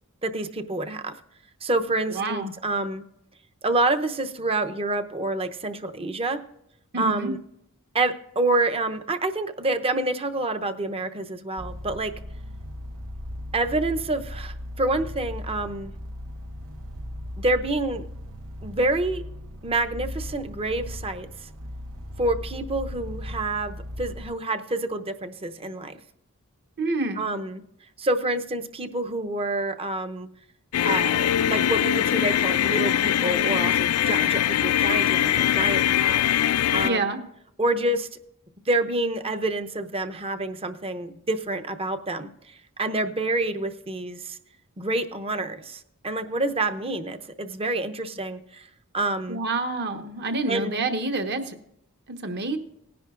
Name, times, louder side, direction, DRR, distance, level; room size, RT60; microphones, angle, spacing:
voice 1, 0.2-1.1 1.6-3.0 3.6-6.4 7.0-7.4 7.9-12.1 13.5-15.9 17.4-18.0 18.6-19.2 19.6-21.5 22.2-26.0 27.2-27.6 28.0-30.3 30.8-36.2 36.7-37.1 37.6-38.1 38.7-44.4 44.8-48.7 48.9-49.4 50.5-50.8, right 2 dB, 25° right, 8 dB, 0.8 m, -27 dB
voice 2, 2.1-2.5 6.9-7.3 26.8-27.3 36.8-37.2 49.3-51.6 52.1-52.6, right 2 dB, 50° right, 6 dB, 1.3 m, -27 dB
sound 1, 11.6-24.3, equal, 70° right, 1.0 m, -37 dB
sound 2, 30.7-36.9, left 10 dB, 75° left, 0.4 m, -22 dB
19.0 x 10.5 x 2.5 m, 0.77 s
head